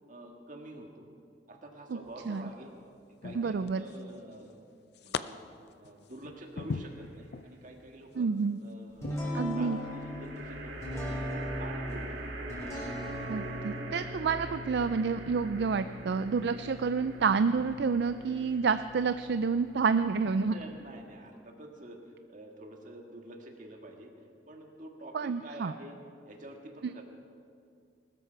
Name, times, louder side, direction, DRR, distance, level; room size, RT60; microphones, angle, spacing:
voice 1, 0.1-1.1 1.5-2.7 3.1-4.6 5.0-5.4 5.8-8.3 8.6-9.2 9.5-10.8 11.2-12.2 20.4-22.0 22.3-24.1 24.5-26.0 26.2-27.0, right 1 dB, 45° right, 2 dB, 1.7 m, -47 dB
sound 1, 2.1-2.5 3.2-4.1 4.5-5.2 5.7-7.5 8.0-8.2 9.0-9.2, left 5 dB, 60° left, 0.4 m, -39 dB
voice 2, 3.4-3.8 8.2-8.6 9.3-9.8 13.3-20.5 25.1-25.7, right 5 dB, 60° right, 11 dB, 0.4 m, -29 dB
sound 2, 6.7-7.3 9.8-21.2, right 2 dB, 85° right, 2.1 m, -44 dB
sound 3, 9.0-20.5, left 1 dB, 15° left, 4.4 m, -41 dB
20.0 x 13.0 x 4.6 m, 2.3 s
head